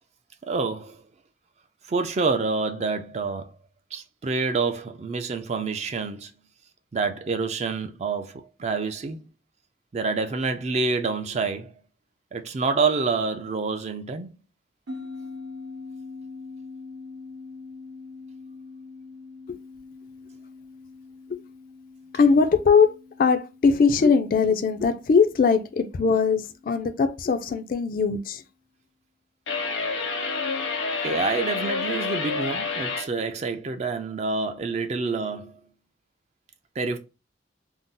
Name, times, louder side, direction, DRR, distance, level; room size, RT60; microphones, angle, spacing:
voice 1, 0.4-1.0 1.9-3.5 3.9-6.3 6.9-9.2 9.9-11.7 12.3-14.3 31.0-35.6 36.8-37.0, right 4 dB, 35° right, 0.3 m, -27 dB
sound 1, 14.9-27.6, left 3 dB, 80° right, 0.7 m, -43 dB
voice 2, 22.1-22.9 23.2-28.4, left 5 dB, 45° left, 0.3 m, -21 dB
sound 2, 29.5-33.1, left 4 dB, 75° left, 0.8 m, -28 dB
2.5 x 2.0 x 3.7 m
head